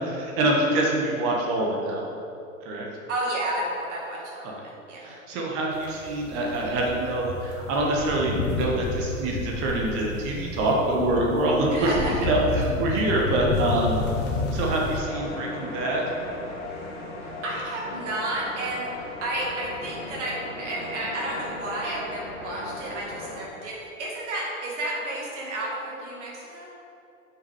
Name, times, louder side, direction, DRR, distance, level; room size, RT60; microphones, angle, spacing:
voice 1, 0.0-2.0 2.6-2.8 4.4-4.5 5.0-11.9 12.2-14.0 14.5-16.0, right 2 dB, 35° right, -1 dB, 1.5 m, -25 dB
voice 2, 3.1-5.2 11.7-12.3 17.2-18.9 19.2-26.7, right 1 dB, 55° right, -4 dB, 2.2 m, -32 dB
sound 1, 5.8-15.0, left 3 dB, 25° left, 0.9 m, -30 dB
long and low, 15.0-23.4, left 2 dB, 55° left, 1.9 m, -37 dB
9.1 x 6.2 x 4.9 m, 2.8 s
figure-of-eight pair, 100°, 41 cm